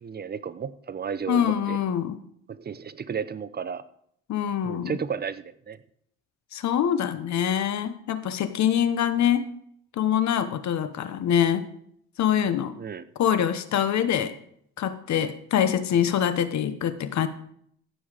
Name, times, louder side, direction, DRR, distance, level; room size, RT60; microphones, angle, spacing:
voice 1, 0.0-1.8 2.5-3.9 4.6-5.8 12.8-13.0, right 7 dB, 30° right, 14 dB, 0.7 m, -33 dB
voice 2, 1.3-2.2 4.3-4.9 6.5-9.5 10.0-11.7 12.2-12.7 13.2-14.3 14.8-17.3, left 9 dB, 65° left, 12 dB, 1.0 m, -24 dB
15.5 x 5.6 x 5.0 m, 0.68 s
cardioid pair, 90°, 30 cm